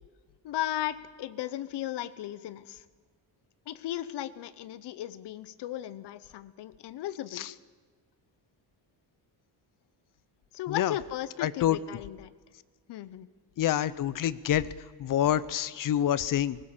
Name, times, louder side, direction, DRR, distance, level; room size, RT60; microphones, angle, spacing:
voice 1, 0.4-2.8 3.7-7.5 10.5-12.3 12.9-13.3, left 13 dB, 70° left, 15 dB, 1.0 m, -36 dB
voice 2, 11.4-11.8 13.6-14.7 15.0-16.6, left 11 dB, 50° left, 17 dB, 0.7 m, -27 dB
21.0 x 19.0 x 7.3 m, 1.5 s
cardioid pair, 180°, 43 cm